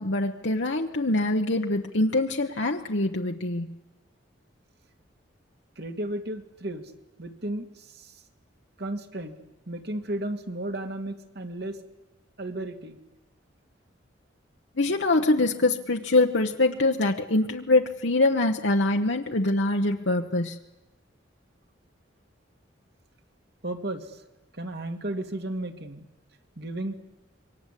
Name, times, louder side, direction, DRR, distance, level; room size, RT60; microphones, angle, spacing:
voice 1, 0.0-3.7 14.8-20.6, left 2 dB, 70° left, 2 dB, 1.2 m, -24 dB
voice 2, 5.8-6.9 7.2-8.1 8.8-9.4 9.7-11.8 12.4-13.0 23.6-24.2 24.5-26.1 26.6-27.0, right 1 dB, 60° right, 6 dB, 2.5 m, -34 dB
27.0 x 23.5 x 8.5 m, 1.0 s
head